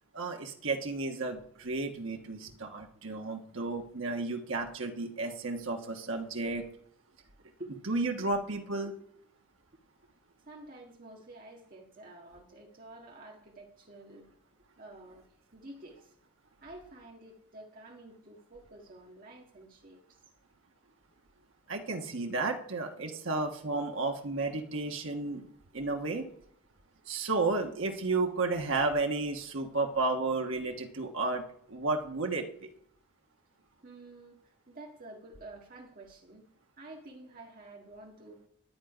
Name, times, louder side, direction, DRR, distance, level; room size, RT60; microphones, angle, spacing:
voice 1, 0.1-6.7 7.9-8.9 21.7-25.5 25.7-26.3 27.1-31.4 31.7-32.7, right 3 dB, 65° right, 3 dB, 1.4 m, -32 dB
voice 2, 10.5-14.3 14.8-16.2 16.6-20.2 33.8-36.5 36.8-38.4, right 2 dB, 40° right, -1 dB, 1.8 m, -50 dB
11.0 x 9.4 x 5.1 m, 0.69 s
head